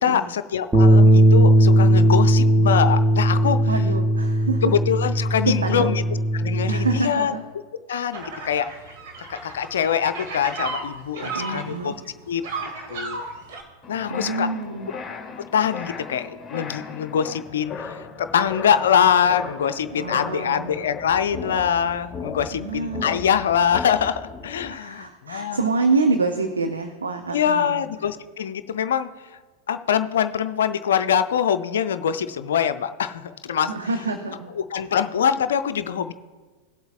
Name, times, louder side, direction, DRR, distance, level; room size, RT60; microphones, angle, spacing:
voice 1, 0.0-3.6 4.6-6.0 6.3-7.3 7.9-8.7 9.2-11.9 12.3-13.2 13.9-14.5 15.4-25.6 27.3-29.1 29.7-33.7 34.7-36.1, left 8 dB, 60° left, 10 dB, 0.5 m, -23 dB
sound 1, 0.7-7.0, equal, 10° right, 1.1 m, -17 dB
voice 2, 3.7-4.7 5.2-6.0 6.7-7.4 8.3-8.7 11.2-12.0 14.1-14.9 19.9-20.7 22.5-23.2 24.7-27.8 33.7-34.9, right 3 dB, 75° right, 6 dB, 0.7 m, -27 dB
sound 2, 8.1-13.6, right 3 dB, 50° right, 2.0 m, -34 dB
sound 3, 13.8-24.7, left 5 dB, 15° left, 1.5 m, -37 dB
18.0 x 7.9 x 2.5 m, 1.3 s
figure-of-eight pair, 90°, 0 cm